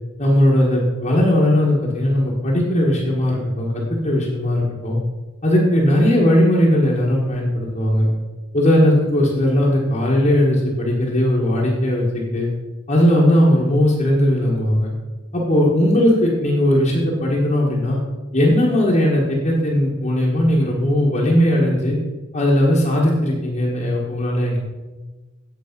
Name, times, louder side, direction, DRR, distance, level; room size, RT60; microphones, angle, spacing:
voice 1, 0.2-5.0 5.4-8.1 8.5-12.5 12.9-14.9 15.3-18.0 18.3-22.0 22.3-24.7, left 1 dB, 35° left, -6 dB, 1.5 m, -18 dB
8.3 x 8.2 x 5.3 m, 1.2 s
head